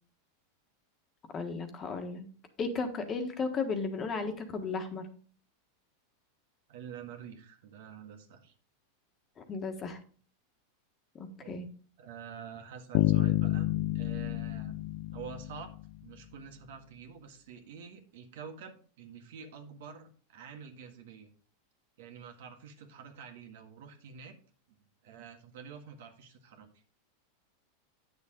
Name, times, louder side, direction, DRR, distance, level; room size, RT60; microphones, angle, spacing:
voice 1, 1.3-2.3 2.6-5.1 9.4-10.0 11.1-11.7, left 4 dB, 25° left, 6 dB, 1.4 m, -35 dB
voice 2, 6.7-8.5 11.4-11.6 12.0-13.7 13.9-14.8 15.1-15.7 16.0-21.3 22.0-24.3 25.0-26.7, right 7 dB, 75° right, 5 dB, 1.7 m, -47 dB
sound 1, 12.9-16.0, left 16 dB, 60° left, 0.5 m, -29 dB
9.3 x 6.8 x 3.7 m, 0.42 s
supercardioid pair, 135°, 0 cm